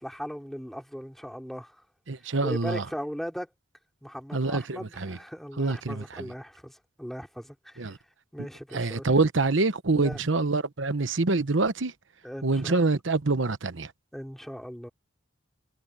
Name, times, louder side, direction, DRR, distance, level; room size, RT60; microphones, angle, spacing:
voice 1, 0.0-1.8 2.4-3.5 4.0-8.0 8.3-9.1 9.9-10.2 12.2-12.8 14.1-14.9, equal, ahead, 3.8 m, -38 dB
voice 2, 2.1-2.8 4.3-5.2 5.6-6.2 7.8-8.0 8.7-11.9 12.4-13.9, right 3 dB, 70° right, 1.1 m, -26 dB
head